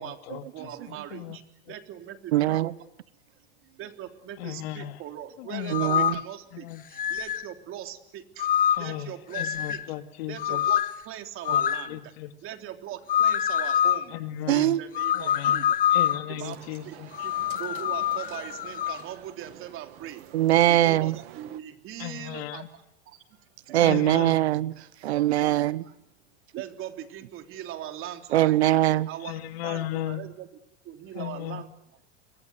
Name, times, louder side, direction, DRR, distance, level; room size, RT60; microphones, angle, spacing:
voice 1, 0.0-0.4 0.9-1.4 4.4-5.0 5.4-5.8 6.5-6.8 8.8-10.6 11.5-11.6 11.9-12.3 14.1-14.8 15.1-17.1 22.0-22.7 23.8-24.4 29.2-30.2 31.1-31.6, left 13 dB, 70° left, 2.7 m, -36 dB
voice 2, 0.5-1.4 1.7-2.7 3.8-8.5 8.8-9.8 10.3-12.1 12.4-14.2 14.5-15.8 16.3-16.6 16.8-20.2 20.7-22.6 23.0-23.4 23.9-24.4 25.3-25.9 26.5-28.6 29.1-30.5 30.8-31.7, right 11 dB, 40° right, 3.4 m, -40 dB
voice 3, 2.3-2.7 5.7-6.2 14.5-14.8 20.3-21.1 23.7-24.7 25.0-25.8 28.3-29.1, right 14 dB, 90° right, 1.1 m, -22 dB
sound 1, 5.7-6.3 7.0-7.5 8.4-9.0 9.3-9.9 10.4-11.0 11.5-11.9 13.1-14.0 15.0-16.3 17.1-19.0, left 10 dB, 25° left, 0.9 m, -25 dB
sound 2, 16.4-21.6, right 16 dB, 65° right, 2.1 m, -48 dB
28.5 x 24.0 x 8.0 m
supercardioid pair, 125°, 32 cm